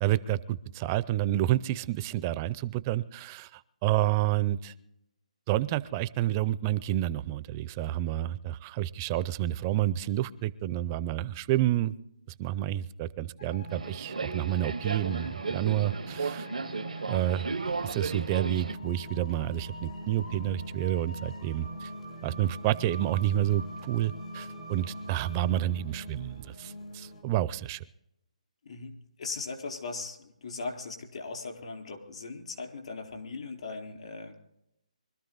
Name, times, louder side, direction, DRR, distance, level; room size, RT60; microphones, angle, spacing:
voice 1, 0.0-4.7 5.5-11.9 12.4-16.5 17.1-17.5 17.8-21.9 22.2-27.8, right 13 dB, 25° right, 17 dB, 0.4 m, -29 dB
sound 1, 13.4-27.2, equal, 80° left, 6.9 m, -43 dB
Subway metro underground, 13.7-18.7, right 4 dB, 80° right, 0.8 m, -35 dB
voice 2, 28.6-34.4, left 3 dB, 60° left, 2 dB, 4.1 m, -39 dB
24.0 x 13.0 x 4.0 m, 0.82 s
hypercardioid pair, 155°, 4 cm